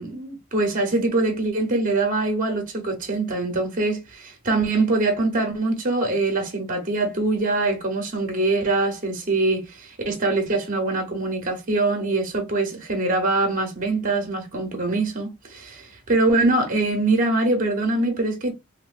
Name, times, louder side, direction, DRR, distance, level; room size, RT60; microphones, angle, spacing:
voice 1, 0.0-18.5, right 2 dB, 40° right, 0.9 m, -23 dB
3.0 x 2.9 x 2.4 m
head